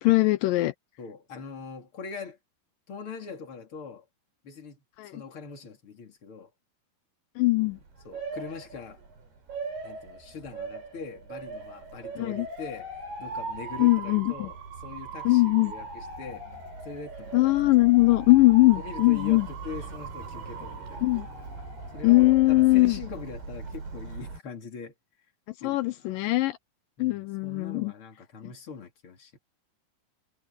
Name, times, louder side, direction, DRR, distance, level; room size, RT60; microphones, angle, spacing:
voice 1, 0.0-0.7 5.0-5.1 7.4-7.8 12.2-12.5 13.8-14.5 15.3-15.7 17.3-19.5 21.0-21.3 22.0-23.0 25.6-26.6 27.0-27.9 28.4-28.5, left 20 dB, 85° left, 2.0 m, -21 dB
voice 2, 1.0-2.4 2.9-4.0 4.4-6.5 7.6-9.0 9.8-14.6 14.8-17.5 18.7-21.2 21.9-24.9 25.6-26.2 27.0-29.4, left 5 dB, 35° left, 3.3 m, -42 dB
Motor vehicle (road) / Siren, 7.6-24.4, right 4 dB, 80° right, 9.1 m, -39 dB
omnidirectional pair, 4.5 m